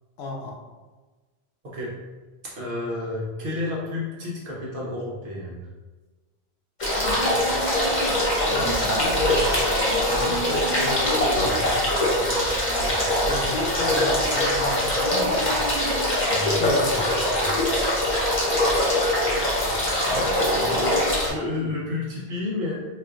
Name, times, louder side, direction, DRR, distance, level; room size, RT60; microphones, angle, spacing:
voice 1, 0.2-0.6 8.4-9.5 10.1-12.0 13.1-15.6 16.4-17.0 20.1-20.9, left 2 dB, 75° left, 0 dB, 0.9 m, -34 dB
voice 2, 1.6-2.0 2.4-5.6 16.2-17.6 21.3-22.9, left 2 dB, 60° right, -5 dB, 1.0 m, -31 dB
sound 1, 6.8-21.3, left 1 dB, 45° left, 1.0 m, -22 dB
4.2 x 2.4 x 2.4 m, 1.3 s
omnidirectional pair, 1.1 m